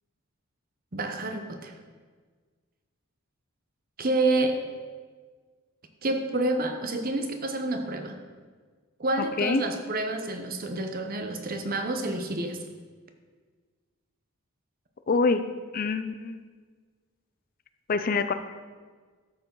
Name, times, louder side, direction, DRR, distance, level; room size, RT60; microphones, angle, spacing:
voice 1, 0.9-1.7 4.0-4.6 6.0-8.2 9.0-12.6, right 2 dB, 45° right, 6 dB, 0.9 m, -28 dB
voice 2, 15.1-15.4 15.7-16.4 17.9-18.3, left 4 dB, 40° left, 9 dB, 0.4 m, -25 dB
12.5 x 7.0 x 3.9 m, 1.5 s
head